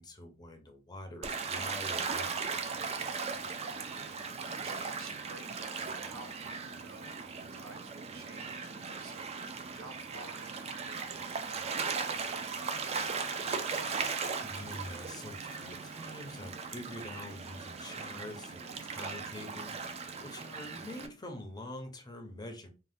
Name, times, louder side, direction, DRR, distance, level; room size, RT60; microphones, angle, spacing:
voice 1, 0.0-2.4 14.1-22.7, left 1 dB, 20° left, 4 dB, 0.5 m, -45 dB
Gull seagull / Waves surf, 1.2-21.1, right 5 dB, 30° right, 0.3 m, -38 dB
voice 2, 3.4-13.7, right 3 dB, 75° right, 4 dB, 0.8 m, -53 dB
2.6 x 2.1 x 3.4 m, 0.32 s
head